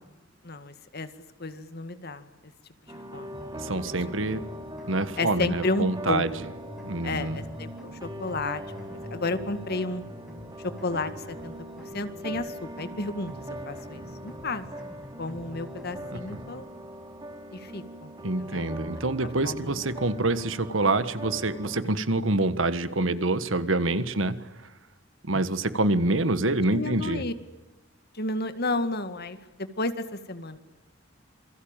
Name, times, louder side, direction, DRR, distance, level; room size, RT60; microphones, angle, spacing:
voice 1, 0.4-1.1 1.4-2.2 2.9-3.4 5.2-6.3 7.0-8.8 9.1-10.0 10.6-11.5 11.9-13.3 13.7-14.7 15.2-16.7 17.5-18.1 18.4-18.7 19.4-19.7 26.7-27.3 28.1-30.6, left 2 dB, 55° left, 10 dB, 2.0 m, -32 dB
sound 1, 2.9-21.8, right 1 dB, 20° right, 3.2 m, -41 dB
sound 2, 3.3-16.5, equal, ahead, 6.7 m, -45 dB
voice 2, 3.5-4.4 4.9-6.3 6.8-7.4 16.1-16.2 18.2-24.5 25.2-27.2, right 2 dB, 85° right, 13 dB, 1.6 m, -26 dB
27.5 x 23.0 x 9.0 m, 1.1 s
head